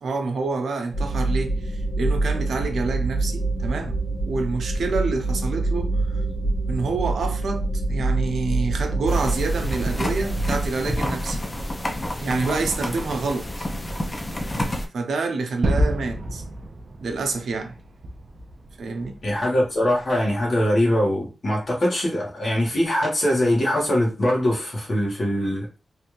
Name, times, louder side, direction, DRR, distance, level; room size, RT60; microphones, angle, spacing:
voice 1, 0.0-4.0 4.2-6.2 6.7-11.4 12.2-13.7 14.9-16.4 17.0-17.8 18.8-19.2, right 3 dB, 90° right, 0.6 m, -27 dB
sound 1, 0.9-10.7, right 2 dB, 75° left, 1.4 m, -25 dB
sound 2, 9.1-14.9, left 1 dB, 20° left, 0.6 m, -29 dB
Gunshot gunfire / Fireworks / Boom, 15.6-20.4, right 1 dB, 45° right, 0.5 m, -29 dB
voice 2, 19.2-25.8, left 1 dB, 40° left, 1.4 m, -22 dB
3.3 x 2.5 x 3.0 m
wide cardioid pair, 155°, 0 cm